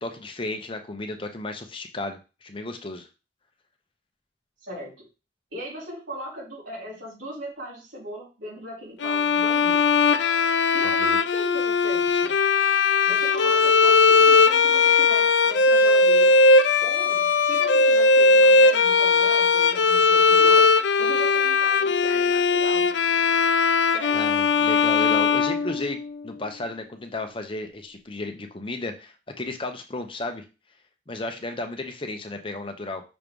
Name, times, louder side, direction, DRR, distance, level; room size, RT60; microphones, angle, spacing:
voice 1, 0.0-3.1 11.0-11.2 24.1-30.4 31.1-33.0, left 2 dB, 30° left, 5 dB, 0.7 m, -34 dB
voice 2, 4.6-5.1 5.5-10.1 10.7-12.3 13.1-16.4 16.8-20.7 21.0-23.0 23.9-24.2, equal, 75° right, -6 dB, 4.0 m, -38 dB
Bowed string instrument, 9.0-26.2, left 4 dB, 75° left, 0.5 m, -19 dB
6.1 x 3.2 x 5.2 m, 0.31 s
head